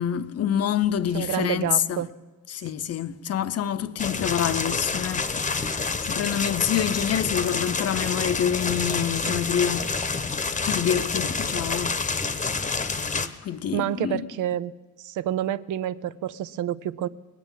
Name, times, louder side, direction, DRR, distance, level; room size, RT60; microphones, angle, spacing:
voice 1, 0.0-2.0 2.5-9.9 10.7-12.0 12.5-14.2, left 9 dB, 55° left, 0.7 m, -27 dB
voice 2, 1.1-2.1 13.7-14.7 15.0-17.1, right 11 dB, 90° right, 0.5 m, -28 dB
sound 1, 4.0-13.3, left 4 dB, 25° left, 0.9 m, -28 dB
19.0 x 9.1 x 7.3 m
cardioid pair, 90°, 30 cm